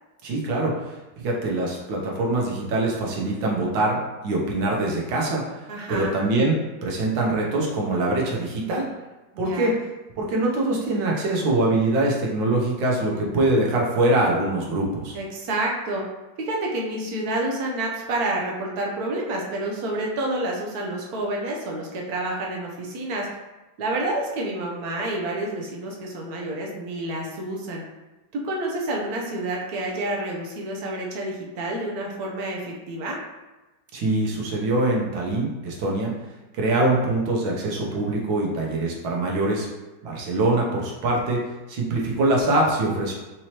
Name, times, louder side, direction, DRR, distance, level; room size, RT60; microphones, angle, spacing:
voice 1, 0.2-4.0 4.2-8.9 9.4-9.8 10.2-15.2 33.9-36.1 36.5-39.7 40.0-41.4 41.7-43.1, right 2 dB, 85° right, -2 dB, 1.7 m, -23 dB
voice 2, 5.7-6.2 9.3-9.7 15.1-16.0 16.4-23.3 23.8-27.8 28.4-33.2, right 1 dB, 60° right, -1 dB, 1.1 m, -29 dB
5.3 x 3.1 x 2.9 m, 1.1 s
omnidirectional pair, 2.0 m